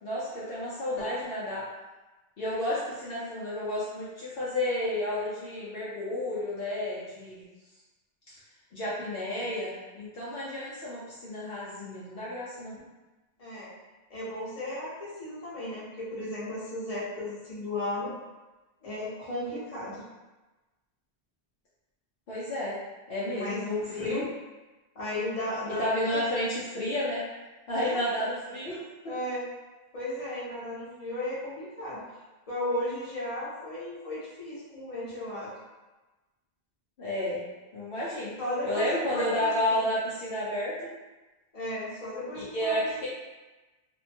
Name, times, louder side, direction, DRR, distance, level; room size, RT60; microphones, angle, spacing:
voice 1, 0.0-1.6 2.4-7.4 8.3-8.4 8.7-12.7 22.3-22.8 23.1-24.2 25.8-27.2 27.7-29.1 37.0-37.4 37.7-38.3 38.6-40.9 42.3-43.1, left 1 dB, 65° left, -9 dB, 0.8 m, -31 dB
voice 2, 13.4-13.7 14.1-18.1 18.8-20.0 23.3-23.6 23.9-24.2 24.9-25.9 26.1-26.2 27.8-28.0 29.1-29.4 29.9-32.0 32.5-35.5 38.4-39.8 41.5-42.8, left 1 dB, 35° left, -8 dB, 0.9 m, -35 dB
2.6 x 2.1 x 2.7 m, 1.1 s
omnidirectional pair, 1.1 m